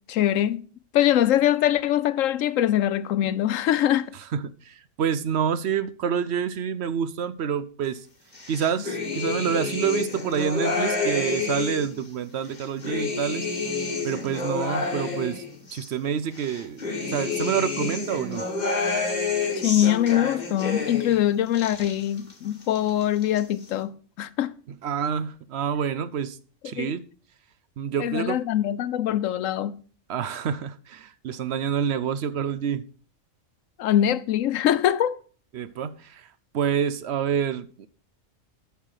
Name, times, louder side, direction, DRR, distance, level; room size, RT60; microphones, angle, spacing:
voice 1, 0.1-0.6 0.9-4.1 19.5-24.5 26.6-26.9 28.0-29.8 33.8-35.2, left 11 dB, 90° left, 1.0 m, -23 dB
voice 2, 4.3-8.0 8.5-13.5 14.0-15.4 15.7-18.5 24.8-26.4 26.6-27.0 27.8-28.4 30.1-32.9 35.5-36.3 36.5-37.9, right 8 dB, 65° right, 0.8 m, -27 dB
sound 1, 8.3-12.0 12.4-15.9 16.3-21.2 21.5-22.3 22.6-23.4, left 4 dB, 35° left, 1.9 m, -29 dB
8.7 x 5.8 x 6.4 m
omnidirectional pair, 1.3 m